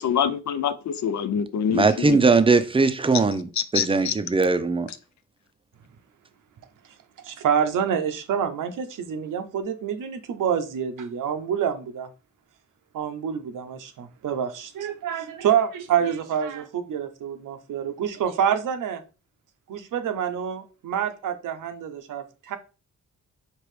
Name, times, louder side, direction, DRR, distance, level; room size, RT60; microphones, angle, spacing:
voice 1, 0.0-2.2 3.7-4.1, left 8 dB, 65° left, 0.5 m, -25 dB
voice 2, 1.7-4.9, right 4 dB, 15° right, 0.5 m, -20 dB
voice 3, 7.2-12.1 12.9-19.0 19.7-22.6, right 8 dB, 90° right, 0.7 m, -27 dB
4.6 x 3.0 x 3.2 m
cardioid pair, 80°, 31 cm